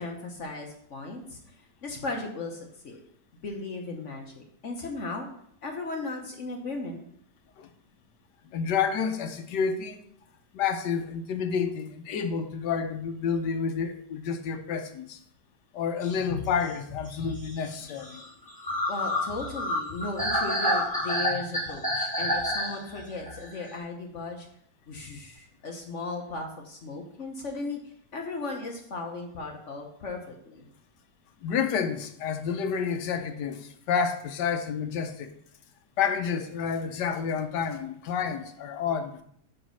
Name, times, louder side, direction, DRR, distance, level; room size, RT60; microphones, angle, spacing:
voice 1, 0.0-1.5 1.8-3.0 3.4-5.3 5.6-7.0 18.9-24.5 24.9-30.7, left 3 dB, 50° left, 2 dB, 1.1 m, -36 dB
voice 2, 8.5-10.0 10.5-15.2 15.7-18.2 31.4-35.3 36.0-39.2, left 6 dB, 75° left, 8 dB, 1.3 m, -29 dB
sound 1, 16.0-23.8, left 1 dB, 5° left, 1.6 m, -30 dB
5.4 x 5.2 x 6.2 m, 0.68 s
omnidirectional pair, 2.0 m